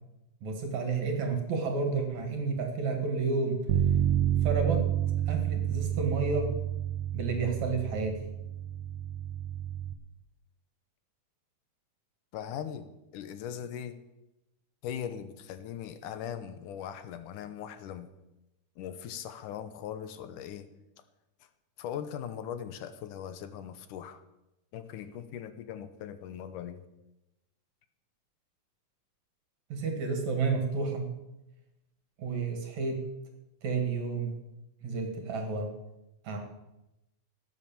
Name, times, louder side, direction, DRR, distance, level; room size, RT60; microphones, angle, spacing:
voice 1, 0.4-3.6 4.4-4.8 5.3-6.6 7.1-8.2 29.7-31.1 32.2-33.0 33.6-34.4 34.8-35.7 36.3-36.4, right 4 dB, 60° right, 3 dB, 3.5 m, -30 dB
Bass guitar, 3.7-9.9, right 11 dB, 85° right, 2.4 m, -29 dB
voice 2, 12.3-14.0 14.8-18.1 18.8-20.7 21.4-21.5 21.8-24.2 24.7-26.9, left 9 dB, 80° left, 10 dB, 2.4 m, -40 dB
17.5 x 8.3 x 7.2 m, 0.94 s
omnidirectional pair, 3.7 m